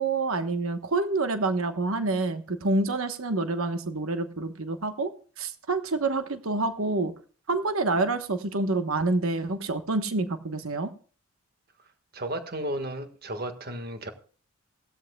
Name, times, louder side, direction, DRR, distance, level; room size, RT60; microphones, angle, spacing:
voice 1, 0.0-7.1 7.5-10.9, right 3 dB, 75° right, 1.1 m, -27 dB
voice 2, 12.1-14.1, right 1 dB, 45° right, 1.6 m, -33 dB
18.0 x 13.0 x 2.3 m
head